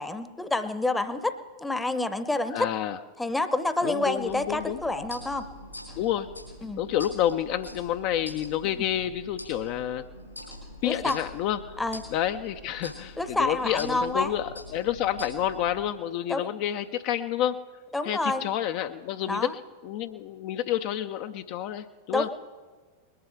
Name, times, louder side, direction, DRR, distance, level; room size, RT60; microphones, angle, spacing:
voice 1, 0.0-2.7 3.2-5.5 6.6-6.8 8.6-8.8 10.8-11.2 11.8-12.0 13.2-14.3 16.3-16.5 17.9-18.4 19.3-19.5 22.1-22.4, left 2 dB, 5° left, 12 dB, 0.8 m, -28 dB
voice 2, 2.5-3.0 3.8-4.8 6.0-6.4 6.8-10.0 10.8-11.8 12.1-17.6 18.0-22.3, left 11 dB, 45° left, 8 dB, 0.5 m, -29 dB
sound 1, 4.2-15.8, left 1 dB, 90° left, 5.2 m, -44 dB
20.5 x 11.0 x 4.6 m, 1.4 s
figure-of-eight pair, 90°, 0 cm